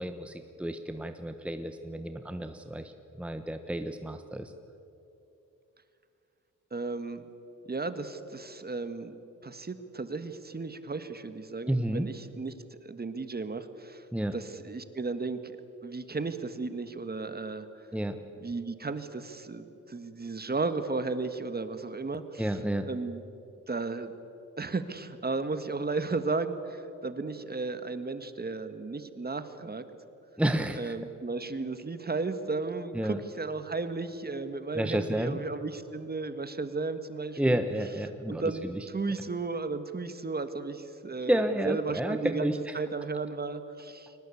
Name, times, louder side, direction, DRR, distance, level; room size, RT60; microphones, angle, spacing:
voice 1, 0.0-4.5 11.7-12.1 14.1-14.3 17.9-18.2 22.4-22.9 30.4-31.0 32.9-33.2 34.7-35.4 37.4-38.8 41.2-42.8, right 1 dB, 5° right, 8 dB, 1.1 m, -31 dB
voice 2, 6.7-7.2 7.7-9.1 9.4-14.1 14.3-17.8 18.4-22.5 22.8-23.2 23.7-24.1 24.6-29.8 30.7-37.6 38.3-44.1, right 3 dB, 30° right, 10 dB, 1.6 m, -34 dB
22.5 x 19.0 x 8.5 m, 2.8 s
cardioid pair, 75°, 32 cm